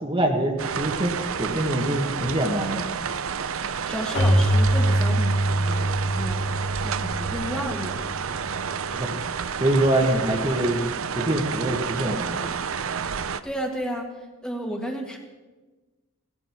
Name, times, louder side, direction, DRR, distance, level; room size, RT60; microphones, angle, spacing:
voice 1, 0.0-2.9 8.9-9.2 9.6-10.8 11.1-12.5, right 1 dB, 25° right, 1 dB, 1.5 m, -24 dB
sound 1, 0.6-13.4, right 6 dB, 65° right, 0.6 m, -30 dB
voice 2, 3.9-6.5 6.8-8.0 13.4-15.2, equal, 5° left, 1 dB, 1.7 m, -32 dB
Keyboard (musical), 4.1-8.6, right 1 dB, 80° left, 2.9 m, -24 dB
17.5 x 15.5 x 4.6 m, 1.2 s
head